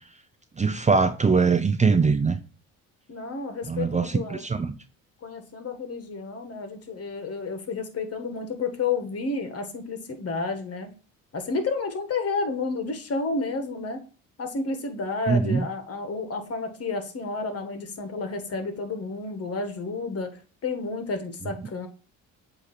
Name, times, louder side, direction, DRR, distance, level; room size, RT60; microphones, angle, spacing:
voice 1, 0.6-2.4 3.7-4.7 15.3-15.6, right 4 dB, 20° right, 0.6 m, -22 dB
voice 2, 2.0-2.3 3.1-4.4 5.2-10.9 11.3-14.0 14.4-21.9, left 3 dB, 40° left, 1.6 m, -31 dB
8.1 x 3.0 x 4.3 m
supercardioid pair, 70°, 35 cm